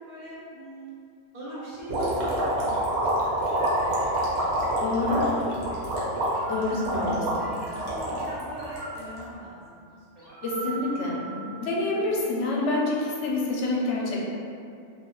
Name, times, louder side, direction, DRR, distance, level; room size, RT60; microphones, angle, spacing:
voice 1, 0.1-0.9 1.3-2.3 2.7-4.5 4.8-6.8 7.4-10.9, equal, 50° right, -7 dB, 0.6 m, -42 dB
sound 1, 1.4-2.8 3.4-4.7 6.2-7.9 8.6-12.1, right 4 dB, 20° left, 0.6 m, -43 dB
sound 2, 1.9-9.2, right 1 dB, 70° right, 0.9 m, -27 dB
voice 2, 4.8-5.2 6.5-7.5 10.4-14.2, left 2 dB, 75° left, -3 dB, 0.9 m, -27 dB
2.4 x 2.3 x 2.9 m, 2.4 s
omnidirectional pair, 1.2 m